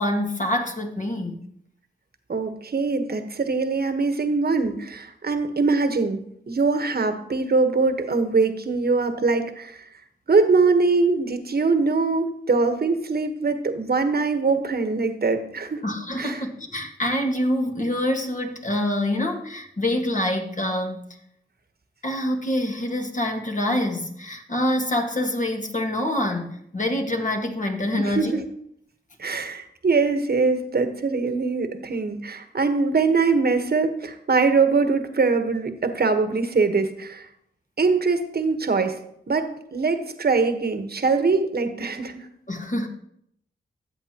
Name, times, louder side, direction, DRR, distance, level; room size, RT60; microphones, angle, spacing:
voice 1, 0.0-1.4 15.8-21.0 22.0-28.4 42.5-42.9, left 1 dB, 40° left, 3 dB, 1.7 m, -26 dB
voice 2, 2.3-6.2 6.5-9.8 10.3-15.8 16.2-16.4 28.0-28.4 29.2-37.3 37.8-38.9 39.3-42.2, right 4 dB, 50° right, 8 dB, 1.3 m, -22 dB
13.5 x 7.6 x 3.0 m, 0.72 s
cardioid pair, 45°, 20 cm